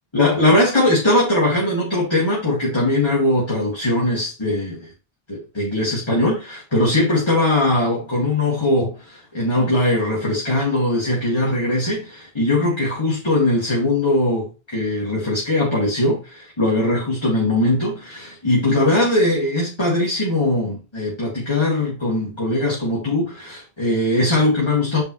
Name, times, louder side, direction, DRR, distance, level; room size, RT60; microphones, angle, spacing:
voice 1, 0.1-4.9 5.3-25.0, left 1 dB, 25° left, 1.9 m, -20 dB
8.9 x 4.1 x 3.0 m
omnidirectional pair, 1.0 m